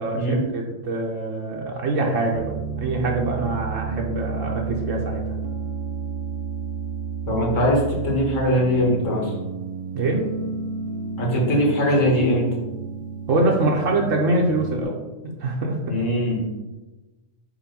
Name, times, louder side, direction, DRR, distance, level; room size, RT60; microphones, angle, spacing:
voice 1, 0.0-2.5 2.8-5.2 9.9-10.2 13.3-15.0 15.4-15.8, right 2 dB, 70° right, 0 dB, 1.2 m, -24 dB
Piano, 2.3-14.8, right 5 dB, 45° right, 0.4 m, -31 dB
voice 2, 7.3-9.3 11.2-12.5 15.9-16.4, equal, 70° left, -2 dB, 1.9 m, -21 dB
5.3 x 4.6 x 5.2 m, 1.1 s
omnidirectional pair, 1.4 m